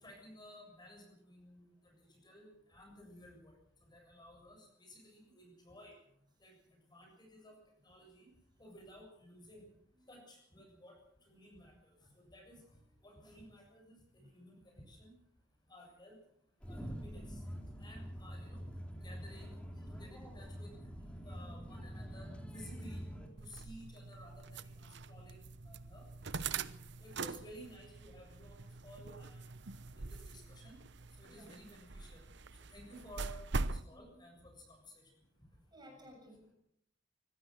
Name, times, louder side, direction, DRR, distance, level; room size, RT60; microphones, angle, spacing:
voice 1, 0.0-1.9 2.2-3.5 3.8-5.9 6.4-6.5 6.9-7.5 7.8-8.3 8.6-9.6 10.1-10.9 11.3-11.7 12.3-12.6 13.0-14.0 14.3-15.1 15.7-16.2 16.7-17.4 17.8-18.6 19.0-19.6 19.9-20.7 21.2-23.0 23.4-24.7 25.1-25.4 25.7-26.1 26.4-26.6 27.0-29.5 29.9-30.8 31.2-32.2 32.7-34.6, equal, 25° left, 1 dB, 7.4 m, -55 dB
sound 1, 16.6-23.3, equal, 5° left, 3.5 m, -46 dB
sound 2, 23.4-33.9, right 4 dB, 65° right, 0.9 m, -43 dB
voice 2, 33.8-34.2 35.7-36.5, equal, 25° right, 2 dB, 7.4 m, -57 dB
24.5 x 16.5 x 6.5 m, 0.74 s
head